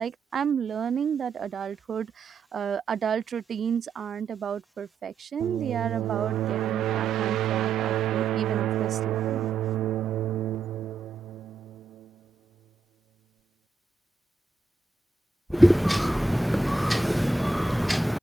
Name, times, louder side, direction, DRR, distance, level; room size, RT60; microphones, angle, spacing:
voice 1, 0.0-9.5, right 7 dB, 55° right, 4.4 m, -31 dB
sound 1, 5.4-12.1, right 13 dB, 85° right, 0.6 m, -29 dB
voice 2, 15.6-18.2, equal, ahead, 0.4 m, -22 dB
cardioid pair, 90°, 0 cm